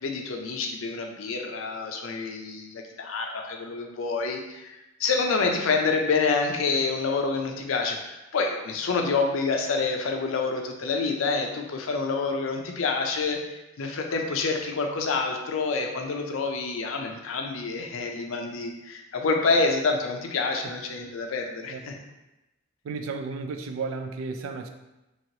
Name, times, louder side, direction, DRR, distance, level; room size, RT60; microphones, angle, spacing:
voice 1, 0.0-21.9, left 4 dB, 75° left, 3 dB, 0.5 m, -27 dB
voice 2, 22.8-24.7, right 4 dB, 85° right, 7 dB, 0.3 m, -33 dB
3.0 x 2.8 x 2.8 m, 0.98 s
head